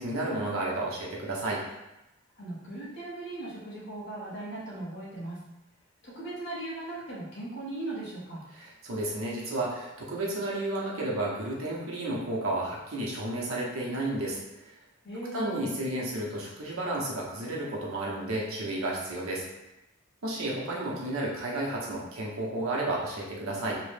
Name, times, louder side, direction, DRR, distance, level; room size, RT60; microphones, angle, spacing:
voice 1, 0.0-1.6 8.6-14.7 15.3-19.4 20.2-23.7, right 1 dB, 85° right, -3 dB, 0.7 m, -32 dB
voice 2, 2.4-5.4 6.0-8.4 15.0-15.6, right 2 dB, 55° left, -6 dB, 0.9 m, -38 dB
2.9 x 2.1 x 3.2 m, 0.95 s
head